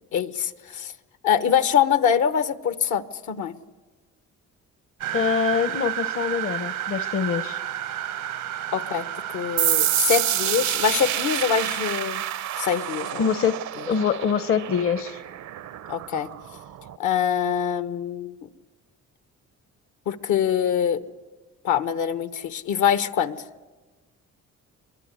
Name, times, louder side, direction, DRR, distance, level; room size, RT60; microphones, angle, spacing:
voice 1, 0.1-0.9 1.2-3.5 8.7-9.1 9.3-12.2 12.6-13.3 15.9-16.3 17.0-18.3 20.1-21.0 21.6-23.4, left 8 dB, 75° left, 12 dB, 1.2 m, -24 dB
sound 1, 5.0-11.9, right 11 dB, 90° right, 1.3 m, -31 dB
voice 2, 5.1-7.6 13.2-13.5 13.9-15.2, left 7 dB, 45° left, 13 dB, 0.8 m, -24 dB
sound 2, 9.6-17.0, right 12 dB, 65° right, 0.7 m, -28 dB
23.0 x 23.0 x 8.3 m, 1.3 s
cardioid pair, 90°, 30 cm